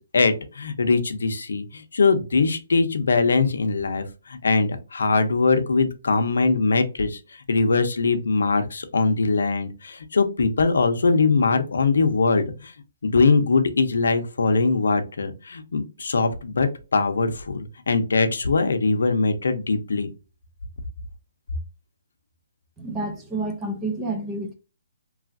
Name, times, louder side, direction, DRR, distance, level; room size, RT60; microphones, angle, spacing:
voice 1, 0.0-7.2 7.5-12.7 13.0-20.1, left 4 dB, 80° left, 0.6 m, -22 dB
voice 2, 22.8-24.5, right 2 dB, 10° right, 0.3 m, -29 dB
3.0 x 2.4 x 2.4 m
hypercardioid pair, 175°, 0 cm